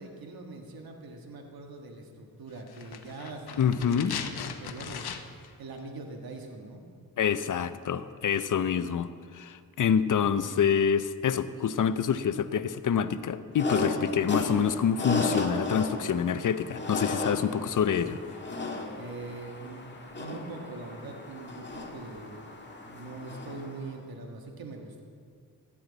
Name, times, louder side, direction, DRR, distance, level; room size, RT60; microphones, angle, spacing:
voice 1, 0.0-6.8 14.1-14.3 17.3-17.5 19.0-22.5 22.8-25.0, right 3 dB, 70° right, 2 dB, 1.6 m, -43 dB
sound 1, 2.7-5.5 5.8-5.9, left 7 dB, 80° left, 0.9 m, -38 dB
voice 2, 3.6-4.1 7.2-18.2, left 7 dB, 55° left, 12 dB, 0.7 m, -27 dB
sound 2, 13.5-23.9, left 3 dB, 30° left, 1.9 m, -35 dB
17.0 x 11.5 x 4.0 m, 2.1 s
cardioid pair, 80°, 38 cm